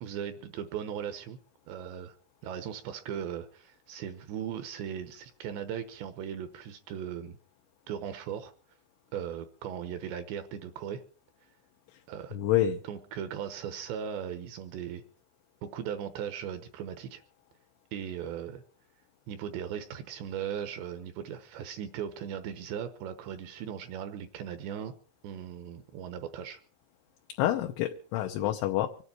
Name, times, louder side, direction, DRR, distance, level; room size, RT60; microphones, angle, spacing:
voice 1, 0.0-1.4 1.7-2.1 2.4-7.4 7.9-8.5 9.1-11.0 12.1-12.4 12.8-15.0 15.6-17.2 17.9-18.6 19.3-24.9 25.2-26.6, right 9 dB, 75° right, 9 dB, 2.8 m, -38 dB
voice 2, 12.3-12.8 27.4-29.0, left 12 dB, 75° left, 4 dB, 3.1 m, -28 dB
25.0 x 9.8 x 4.4 m, 0.43 s
omnidirectional pair, 5.8 m